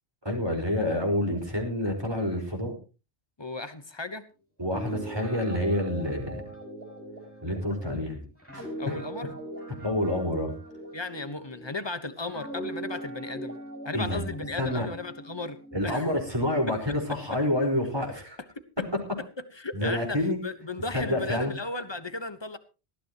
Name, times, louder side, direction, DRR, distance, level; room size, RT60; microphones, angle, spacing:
voice 1, 0.3-2.8 4.6-6.4 7.4-8.2 8.5-9.0 9.8-10.5 13.9-14.2 14.6-14.9 15.7-18.4 19.7-20.4 20.9-21.5, left 1 dB, 25° right, 1 dB, 5.0 m, -28 dB
voice 2, 3.4-4.2 8.8-9.3 10.9-13.6 13.8-15.6 15.8-16.1 18.8-18.9 19.5-20.2 20.4-22.6, left 3 dB, 25° left, 11 dB, 1.3 m, -35 dB
Guitar, 4.6-11.8 12.3-16.0, right 1 dB, 10° left, 5.7 m, -40 dB
19.0 x 13.5 x 3.0 m, 0.31 s
omnidirectional pair, 1.1 m